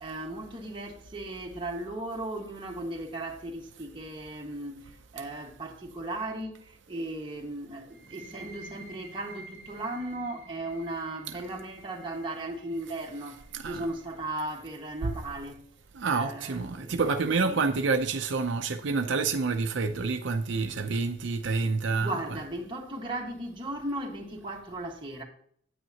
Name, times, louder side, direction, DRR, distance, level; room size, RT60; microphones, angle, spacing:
voice 1, 0.0-15.6 16.0-17.1 17.4-17.6 21.6-25.2, right 1 dB, 25° right, 1.5 m, -37 dB
sound 1, 7.9-15.3, right 2 dB, 40° left, 3.0 m, -51 dB
voice 2, 13.5-13.8 15.0-15.1 15.9-22.1, right 4 dB, 75° right, 0.6 m, -28 dB
9.2 x 9.1 x 2.8 m
head